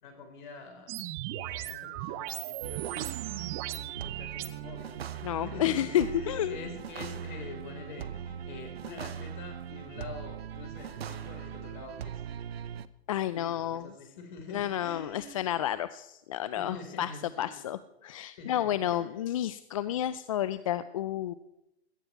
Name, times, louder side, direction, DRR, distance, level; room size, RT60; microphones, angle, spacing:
voice 1, 0.0-0.9 1.3-3.1 3.8-12.2 13.3-15.6 16.5-17.7 18.3-19.1 19.9-20.0, left 4 dB, 50° left, 5 dB, 4.5 m, -46 dB
sound 1, 0.9-4.5, right 15 dB, 20° right, 0.5 m, -37 dB
sound 2, 2.6-12.9, right 9 dB, 70° right, 0.8 m, -40 dB
voice 2, 5.2-6.6 13.1-13.9 14.5-17.1 17.4-21.3, left 12 dB, 35° left, 15 dB, 0.4 m, -31 dB
17.5 x 13.0 x 4.5 m, 0.89 s
hypercardioid pair, 140°, 32 cm